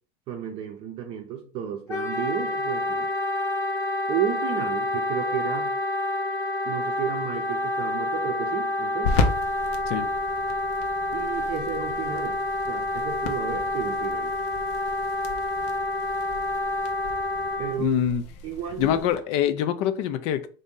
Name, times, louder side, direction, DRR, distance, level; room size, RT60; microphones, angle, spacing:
voice 1, 0.3-3.1 4.1-5.7 6.6-9.2 11.1-12.4 12.7-14.3 17.6-18.0 18.4-18.9, right 9 dB, 35° right, 0.6 m, -32 dB
Wind instrument woodwind instrument, 1.9-17.8, left 2 dB, 20° left, 0.8 m, -28 dB
sound 1, 7.0-19.2, left 3 dB, 80° left, 0.7 m, -35 dB
voice 2, 17.8-18.2 18.8-20.5, left 10 dB, 45° left, 0.4 m, -24 dB
4.0 x 2.6 x 3.7 m
cardioid pair, 175°, 14 cm